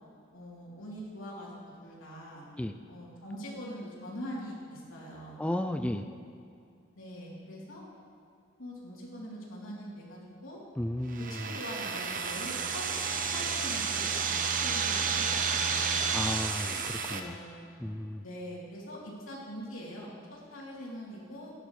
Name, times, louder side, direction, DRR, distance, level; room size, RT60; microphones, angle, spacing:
voice 1, 0.3-1.5 1.8-2.5 2.9-5.4 6.9-7.8 8.6-10.6 11.2-12.8 13.3-14.1 14.5-16.1 17.1-17.6 18.2-21.5, equal, 80° left, -5 dB, 3.2 m, -43 dB
voice 2, 5.4-6.0 10.8-11.4 16.1-17.4 17.8-18.2, left 1 dB, 5° left, 7 dB, 0.3 m, -33 dB
sound 1, 11.1-17.2, right 5 dB, 45° right, 0.8 m, -31 dB
17.0 x 10.5 x 3.2 m, 2.4 s
head